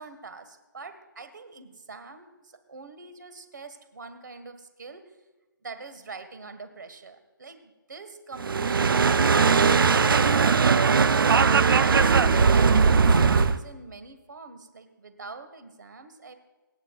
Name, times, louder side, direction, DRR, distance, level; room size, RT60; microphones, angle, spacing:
voice 1, 0.0-5.0 5.6-11.7 12.0-16.3, right 4 dB, 60° right, 9 dB, 1.7 m, -43 dB
sound 1, 8.4-13.6, right 5 dB, 90° right, 0.6 m, -19 dB
27.0 x 9.5 x 2.5 m, 1.2 s
hypercardioid pair, 180°, 11 cm